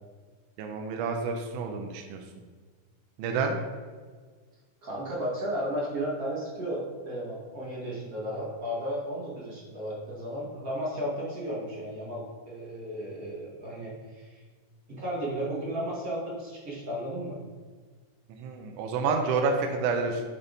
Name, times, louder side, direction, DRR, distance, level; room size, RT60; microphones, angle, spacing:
voice 1, 0.6-2.2 3.2-3.6 18.4-20.2, right 4 dB, 80° right, 3 dB, 2.0 m, -29 dB
voice 2, 4.8-14.4 14.9-17.4, equal, 35° right, -5 dB, 1.7 m, -34 dB
8.8 x 4.2 x 4.0 m, 1.5 s
omnidirectional pair, 3.7 m